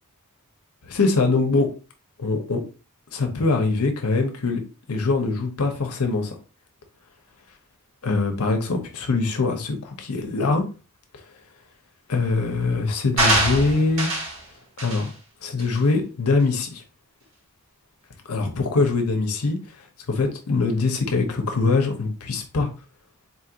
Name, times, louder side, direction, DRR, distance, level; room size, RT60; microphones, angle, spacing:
voice 1, 0.9-1.7 2.2-2.6 3.1-4.6 4.9-6.3 8.0-10.6 12.1-14.1 14.8-15.1 15.4-16.8 18.3-19.6 20.1-22.7, left 3 dB, 80° left, 0.8 m, -23 dB
sound 1, 13.2-14.4 14.8-15.1 15.6-15.7, right 1 dB, 65° right, 1.6 m, -23 dB
4.1 x 2.5 x 2.8 m
head